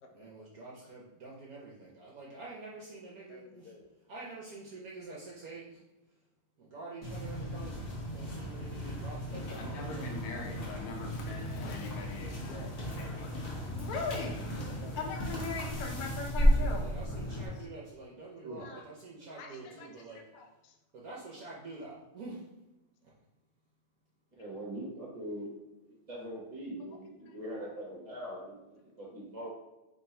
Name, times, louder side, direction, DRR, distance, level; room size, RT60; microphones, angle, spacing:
voice 1, 0.1-3.7 4.1-5.8 6.6-7.8 8.1-11.1 16.5-20.2 20.9-22.5, right 3 dB, 65° right, -4 dB, 0.9 m, -47 dB
voice 2, 3.3-3.9 11.6-11.8 12.4-12.8 14.2-15.3 18.6-18.8 19.2-20.8 26.8-27.0 27.3-27.4, left 4 dB, 65° left, 2 dB, 1.0 m, -52 dB
sound 1, 7.0-17.5, equal, 45° left, 0.8 m, -34 dB
Conversation, 9.3-17.7, left 4 dB, 80° left, 1.6 m, -41 dB
voice 3, 24.4-25.5 25.8-29.5, right 1 dB, 35° right, -5 dB, 0.5 m, -42 dB
3.5 x 3.3 x 4.2 m, 1.0 s
omnidirectional pair, 2.4 m